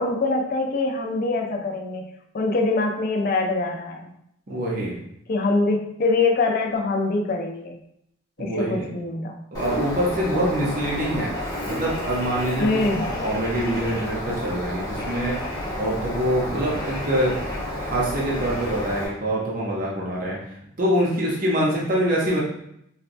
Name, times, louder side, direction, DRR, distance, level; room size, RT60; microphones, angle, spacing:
voice 1, 0.0-4.1 5.3-7.8 8.4-9.4 12.6-13.0, left 3 dB, 45° left, 2 dB, 0.4 m, -24 dB
voice 2, 4.5-5.0 8.4-8.9 9.5-11.3 11.7-15.4 15.8-17.4 17.8-20.4 20.8-22.4, equal, 40° right, -4 dB, 0.6 m, -25 dB
Bird, 9.5-19.1, left 1 dB, 20° left, 0.7 m, -30 dB
4.0 x 2.2 x 2.5 m, 0.75 s
head